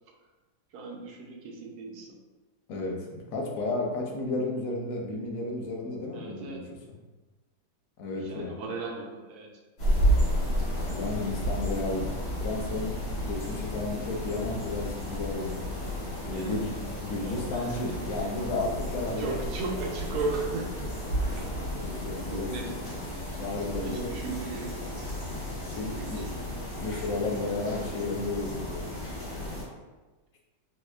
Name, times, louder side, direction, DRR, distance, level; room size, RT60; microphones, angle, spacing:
voice 1, 0.7-2.1 6.1-6.7 8.2-9.5 16.3-16.7 17.2-18.0 19.2-20.9 21.4-21.6 22.3-22.8 23.8-24.9 25.9-26.3, right 3 dB, 75° right, 0 dB, 1.1 m, -36 dB
voice 2, 2.7-6.6 8.0-8.6 10.9-12.1 12.4-15.6 16.2-16.7 17.0-19.4 21.7-22.5 23.4-24.1 25.7-26.2 26.8-28.9, left 2 dB, 65° left, 0 dB, 0.9 m, -33 dB
sound 1, 9.8-29.6, equal, 85° left, 2.1 m, -32 dB
4.2 x 2.3 x 2.2 m, 1.2 s
omnidirectional pair, 1.8 m